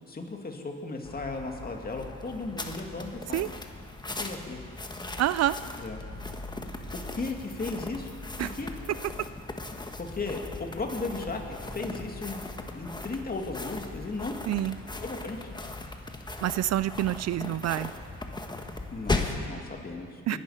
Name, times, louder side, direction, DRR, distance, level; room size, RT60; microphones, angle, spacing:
voice 1, 0.1-3.4 4.2-4.6 5.8-6.0 6.9-8.1 8.5-8.7 10.0-14.4 15.0-15.4 18.9-20.4, left 3 dB, 30° left, 2 dB, 2.3 m, -36 dB
sound 1, 1.0-19.5, left 2 dB, 15° left, 1.3 m, -38 dB
voice 2, 5.2-5.6 8.4-8.5 14.5-14.8 16.4-17.9 20.3-20.4, right 13 dB, 60° right, 16 dB, 0.4 m, -27 dB
21.5 x 11.0 x 5.8 m, 2.3 s
cardioid pair, 90°, 30 cm